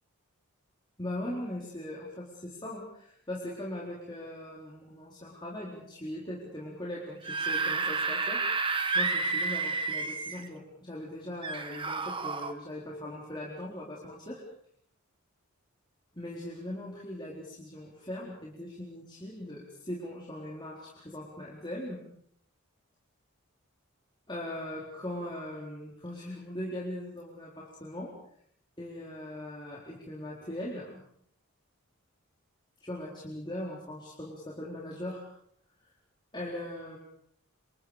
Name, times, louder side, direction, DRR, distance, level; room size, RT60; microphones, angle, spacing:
voice 1, 1.0-8.4 8.9-14.4 16.1-22.0 24.3-28.1 28.8-31.0 32.8-35.2 36.3-37.0, left 1 dB, 20° left, -4 dB, 4.2 m, -40 dB
Screaming / Screech, 7.1-10.5 11.4-12.5, right 4 dB, 25° right, 1.7 m, -30 dB
28.5 x 26.5 x 5.1 m, 0.66 s
head